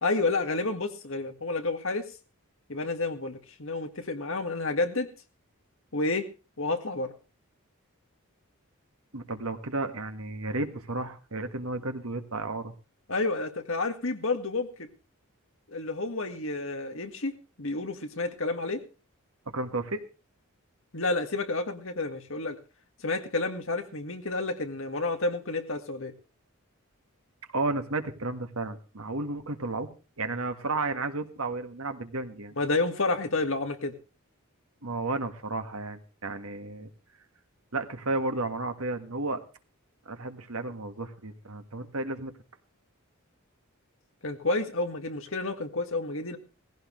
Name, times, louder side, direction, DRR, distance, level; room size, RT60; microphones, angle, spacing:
voice 1, 0.0-2.1 2.7-5.1 5.9-6.3 6.6-7.1 13.1-14.9 15.7-17.3 17.6-18.8 20.9-22.6 23.0-26.1 32.6-33.9 44.2-46.4, left 3 dB, 60° left, 6 dB, 2.0 m, -30 dB
voice 2, 9.1-12.7 19.4-20.0 27.5-29.9 30.2-32.5 34.8-36.9 37.7-39.4 40.0-42.3, right 2 dB, 75° right, 7 dB, 1.8 m, -33 dB
17.5 x 16.0 x 3.2 m, 0.33 s
head